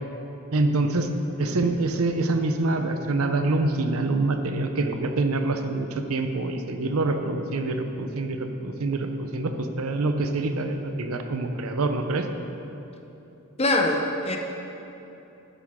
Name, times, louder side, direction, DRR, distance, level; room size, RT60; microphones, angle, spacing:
voice 1, 0.5-1.1 1.4-12.3, right 2 dB, 80° right, 6 dB, 0.7 m, -26 dB
voice 2, 13.6-14.4, left 1 dB, 30° left, 3 dB, 0.7 m, -23 dB
11.0 x 8.8 x 3.6 m, 3.0 s
head